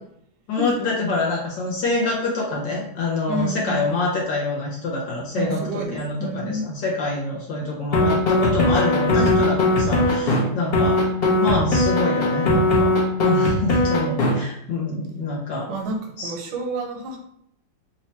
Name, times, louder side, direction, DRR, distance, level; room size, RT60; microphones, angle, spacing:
voice 1, 0.5-11.0 11.4-12.9 13.2-15.7 16.2-16.3, left 2 dB, 75° left, -3 dB, 1.4 m, -26 dB
voice 2, 3.3-3.8 5.4-6.7 15.7-17.2, right 2 dB, 75° right, 2 dB, 1.3 m, -29 dB
sound 1, 7.9-10.4 10.7-14.3, left 2 dB, 55° left, 0.6 m, -19 dB
3.3 x 2.2 x 4.1 m, 0.74 s
omnidirectional pair, 2.0 m